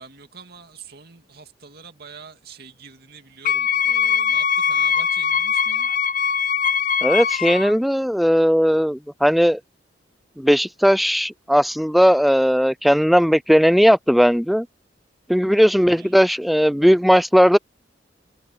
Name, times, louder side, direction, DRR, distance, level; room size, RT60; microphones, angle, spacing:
voice 1, 0.0-5.9 16.0-16.1, right 5 dB, 55° right, 2.6 m, -44 dB
Wind instrument woodwind instrument, 3.4-7.7, left 7 dB, 45° left, 0.7 m, -21 dB
voice 2, 7.0-9.6 10.4-14.7 15.3-17.6, equal, ahead, 0.3 m, -17 dB
head